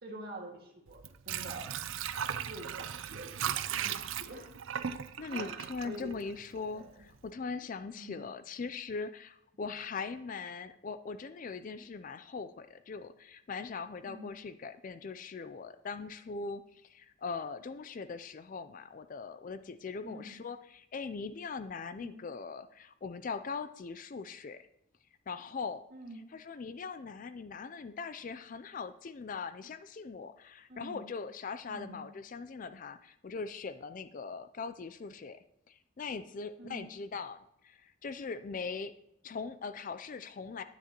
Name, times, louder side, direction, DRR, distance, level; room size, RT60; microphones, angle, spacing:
voice 1, 0.0-1.8 2.1-4.5 5.3-6.2 6.7-6.9 8.0-8.2 14.0-14.4 20.0-20.4 21.9-22.2 25.9-26.3 30.7-31.1 31.7-32.1 36.6-37.0, right 1 dB, 45° right, -1 dB, 2.0 m, -47 dB
Water / Sink (filling or washing), 0.9-6.8 7.1-7.2, right 9 dB, 65° right, 0.5 m, -37 dB
voice 2, 5.2-24.7 25.3-25.8 26.3-35.4 35.7-38.9 39.2-40.6, left 4 dB, 40° left, 11 dB, 0.4 m, -41 dB
9.9 x 9.7 x 2.9 m, 0.79 s
head